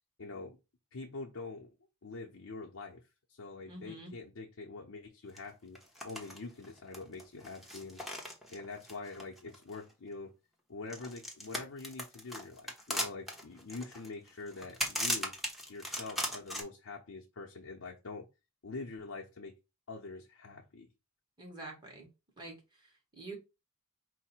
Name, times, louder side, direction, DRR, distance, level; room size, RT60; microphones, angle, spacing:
voice 1, 0.2-0.6 0.9-1.7 2.0-3.0 3.3-5.8 6.0-8.0 8.5-10.3 10.7-15.3 15.7-18.3 18.6-19.5 19.9-20.9, left 3 dB, 70° left, 0.7 m, -45 dB
voice 2, 3.7-4.1 21.4-22.1 22.4-23.4, right 2 dB, 20° right, 1.6 m, -47 dB
sound 1, 5.4-5.5 5.7-6.4 6.6-9.9 10.9-16.6, equal, ahead, 0.9 m, -38 dB
4.7 x 2.1 x 4.3 m
head